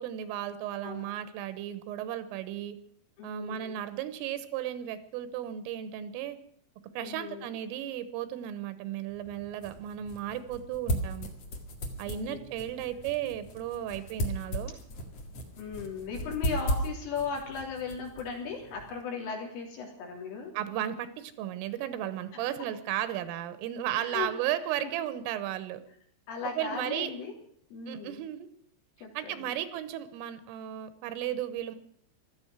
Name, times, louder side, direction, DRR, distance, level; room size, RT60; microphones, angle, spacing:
voice 1, 0.0-2.8 3.2-6.4 7.0-11.3 12.0-14.7 20.6-25.8 26.6-27.1 27.9-28.5 29.2-31.8, right 11 dB, 85° right, 12 dB, 3.6 m, -35 dB
voice 2, 3.2-3.8 7.0-7.6 12.1-12.4 15.6-20.5 22.3-22.4 23.9-24.3 24.8-24.9 26.3-27.3 27.7-28.3 29.0-29.5, left 5 dB, 75° left, 1 dB, 5.6 m, -37 dB
sound 1, 9.1-19.0, equal, 55° left, 1.8 m, -37 dB
16.5 x 13.0 x 6.2 m, 0.64 s
omnidirectional pair, 5.9 m